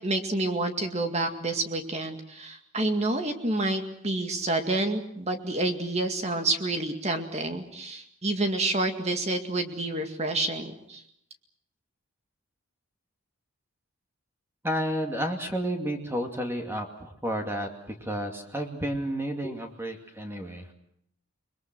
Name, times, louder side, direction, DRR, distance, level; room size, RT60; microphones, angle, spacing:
voice 1, 0.0-11.0, right 2 dB, 30° right, 6 dB, 2.1 m, -28 dB
voice 2, 14.6-20.7, equal, 10° right, 3 dB, 2.5 m, -31 dB
30.0 x 22.0 x 6.2 m, 0.72 s
head